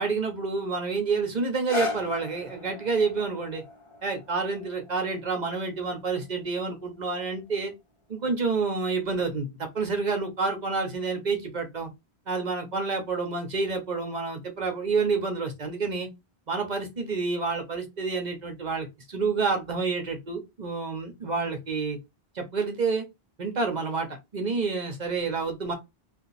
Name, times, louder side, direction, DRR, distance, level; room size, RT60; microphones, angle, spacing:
voice 1, 0.0-3.6 4.0-7.7 8.1-11.9 12.3-16.1 16.5-22.0 22.3-23.0 23.4-24.1 24.3-25.7, right 4 dB, 45° right, 0.9 m, -28 dB
sound 1, 1.4-7.5 8.2-8.3, left 3 dB, 30° left, 1.2 m, -39 dB
2.8 x 2.5 x 4.0 m
omnidirectional pair, 1.1 m